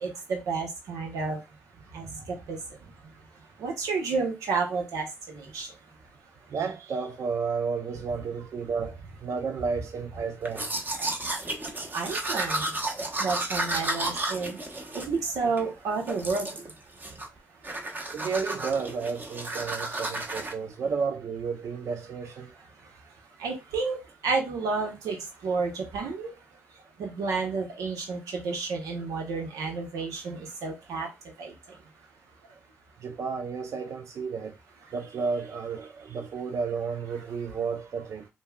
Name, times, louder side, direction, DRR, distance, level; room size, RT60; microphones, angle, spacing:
voice 1, 0.0-1.4 1.9-2.1 2.5-2.6 3.6-5.7 11.9-12.6 13.2-14.6 14.9-16.5 23.4-24.0 24.2-25.2 25.4-26.3 27.0-31.1 31.4-31.5, right 4 dB, 85° right, 0.8 m, -30 dB
voice 2, 6.5-10.7 18.1-22.5 33.0-34.6 34.9-38.3, right 5 dB, 60° right, 0.4 m, -32 dB
Domestic sounds home sounds, 10.4-15.7 16.1-16.7 17.0-17.4 17.6-20.5, right 1 dB, 35° right, 0.9 m, -32 dB
5.3 x 2.1 x 2.2 m
cardioid pair, 65°, 6 cm